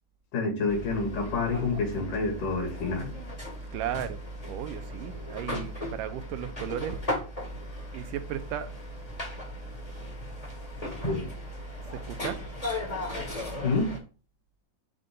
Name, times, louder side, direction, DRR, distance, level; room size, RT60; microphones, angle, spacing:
voice 1, 0.3-3.1 11.1-11.3 13.6-13.9, left 3 dB, 75° left, 3.7 m, -28 dB
sound 1, 0.7-14.0, left 1 dB, 20° left, 0.9 m, -37 dB
voice 2, 3.7-4.2 4.5-7.0 7.9-8.7 11.9-12.4, right 10 dB, 85° right, 2.3 m, -35 dB
8.7 x 3.9 x 3.7 m
omnidirectional pair, 3.7 m